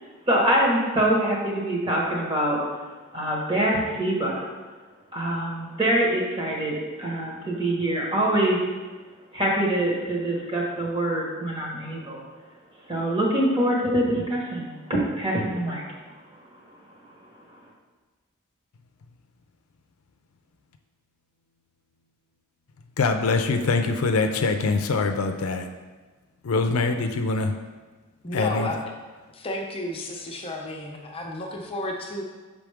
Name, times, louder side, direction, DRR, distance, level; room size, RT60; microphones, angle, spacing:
voice 1, 0.3-2.6 3.1-4.4 5.1-8.6 9.3-12.2 12.9-15.8, right 1 dB, 25° right, -3 dB, 1.4 m, -24 dB
voice 2, 23.0-25.7 26.4-27.5 28.3-28.7, left 3 dB, 80° left, 6 dB, 0.5 m, -23 dB
voice 3, 28.2-28.8 29.3-32.2, left 1 dB, 25° left, 0 dB, 0.7 m, -32 dB
6.1 x 5.2 x 3.5 m, 1.3 s
head